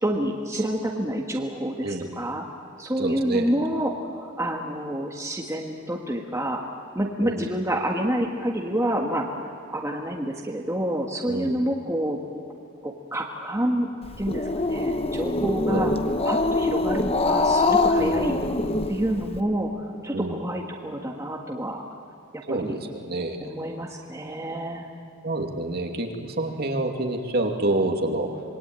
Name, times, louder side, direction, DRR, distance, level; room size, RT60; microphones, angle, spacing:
voice 1, 0.0-2.4 2.8-6.6 6.9-9.3 9.7-12.2 12.8-13.9 14.2-15.9 16.2-18.4 18.9-21.8 22.5-22.7 23.4-24.9, right 1 dB, 15° right, 0 dB, 1.6 m, -28 dB
voice 2, 1.8-2.3 3.0-3.5 7.2-7.4 11.3-11.6 15.7-15.9 18.0-18.4 20.1-20.4 22.5-23.4 25.2-28.4, right 2 dB, 45° right, 3 dB, 2.6 m, -28 dB
Growling, 14.0-19.4, left 2 dB, 25° left, 0.9 m, -24 dB
26.5 x 22.0 x 9.1 m, 2.3 s
head